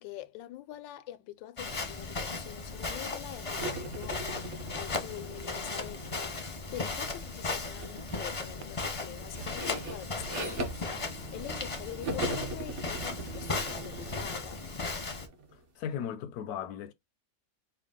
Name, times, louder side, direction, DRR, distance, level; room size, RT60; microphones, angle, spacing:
voice 1, 0.0-14.6, left 13 dB, 90° left, 1.3 m, -45 dB
Walk footsteps, 1.6-15.3, left 3 dB, 30° left, 0.6 m, -36 dB
sound 1, 3.6-6.9 7.8-8.1 8.5-11.7 12.0-15.6, right 1 dB, 45° right, 1.2 m, -40 dB
sound 2, 7.3-14.3, right 6 dB, 85° right, 1.3 m, -49 dB
voice 2, 15.5-16.9, left 8 dB, 70° left, 0.9 m, -37 dB
4.6 x 2.3 x 3.7 m
omnidirectional pair, 1.9 m